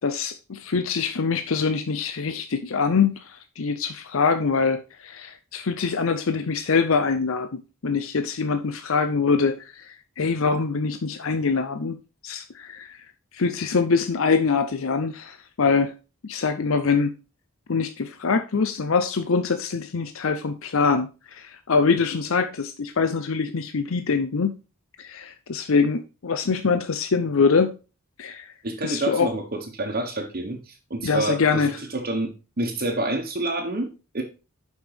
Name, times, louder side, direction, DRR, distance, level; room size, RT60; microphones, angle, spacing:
voice 1, 0.0-12.0 12.2-13.0 13.3-15.9 16.2-17.1 17.7-24.5 25.0-27.7 28.2-28.5 28.8-29.3 31.0-31.8, left 5 dB, 65° left, 9 dB, 0.6 m, -24 dB
voice 2, 28.6-34.2, right 2 dB, 45° right, 2 dB, 1.2 m, -28 dB
6.3 x 5.5 x 5.1 m, 0.32 s
head